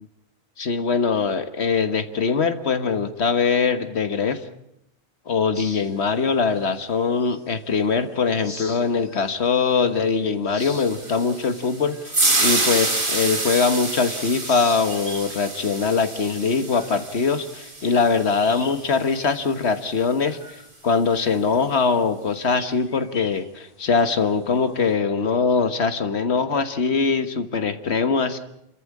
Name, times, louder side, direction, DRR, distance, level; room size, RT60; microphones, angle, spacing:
voice 1, 0.6-4.4 5.3-28.4, left 5 dB, 80° left, 9 dB, 1.6 m, -22 dB
sound 1, 5.5-7.7 8.1-9.4 9.9-10.0 10.4-14.0 14.3-18.9 19.2-19.4 19.8-24.9, left 2 dB, 50° left, 2.8 m, -42 dB
sound 2, 10.6-18.9, right 2 dB, 50° right, 2.6 m, -27 dB
28.5 x 14.0 x 8.4 m, 0.81 s
omnidirectional pair, 1.1 m